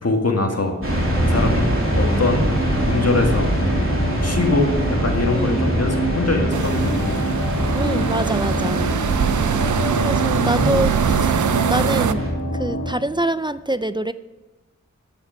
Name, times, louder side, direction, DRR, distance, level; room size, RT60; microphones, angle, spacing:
voice 1, 0.0-2.5 2.9-3.6 4.2-7.2 10.3-10.8 11.5-11.6, left 2 dB, 55° left, 2 dB, 1.9 m, -23 dB
sound 1, 0.8-12.9, right 1 dB, 80° left, 3.0 m, -27 dB
sound 2, 0.8-12.3, right 1 dB, 45° right, 3.0 m, -24 dB
voice 2, 5.3-5.7 7.7-8.8 10.0-11.3 11.7-12.3 12.5-14.1, right 1 dB, 15° right, 13 dB, 0.4 m, -25 dB
sound 3, 6.5-12.1, right 8 dB, 80° right, 0.5 m, -23 dB
9.8 x 8.6 x 6.0 m, 1.2 s
wide cardioid pair, 50°, 29 cm